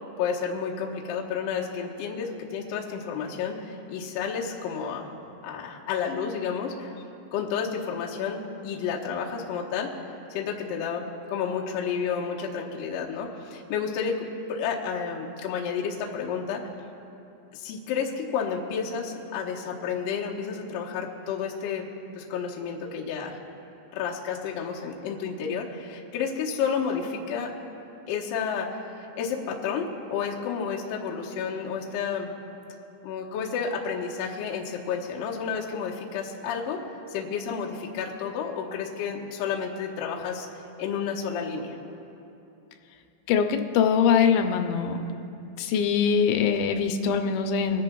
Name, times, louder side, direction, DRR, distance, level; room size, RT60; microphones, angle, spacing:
voice 1, 0.2-5.1 5.4-6.9 7.3-9.9 10.3-16.6 17.5-21.9 22.2-23.4 23.9-27.5 28.1-32.3 33.0-36.8 37.1-40.5 40.8-41.8, left 6 dB, 75° left, -1 dB, 2.1 m, -31 dB
voice 2, 43.3-45.0 45.6-47.8, left 7 dB, 90° left, 5 dB, 3.0 m, -23 dB
26.0 x 10.5 x 2.3 m, 2.8 s
omnidirectional pair, 5.0 m